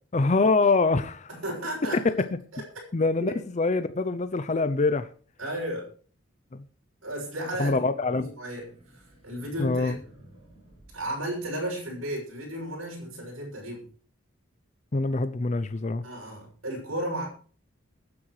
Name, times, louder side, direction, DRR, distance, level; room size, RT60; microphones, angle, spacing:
voice 1, 0.1-1.3 1.9-2.0 2.9-5.1 6.5-6.6 7.6-8.3 9.6-10.0 14.9-16.0, left 3 dB, 35° left, 0.5 m, -24 dB
voice 2, 1.3-2.0 2.5-2.6 3.2-3.3 5.4-5.8 7.0-7.8 8.1-8.7 8.9-9.9 10.9-13.8 16.0-17.3, right 1 dB, 75° right, 6.7 m, -34 dB
sound 1, 8.5-12.0, equal, 30° right, 6.0 m, -54 dB
22.5 x 9.6 x 3.2 m
head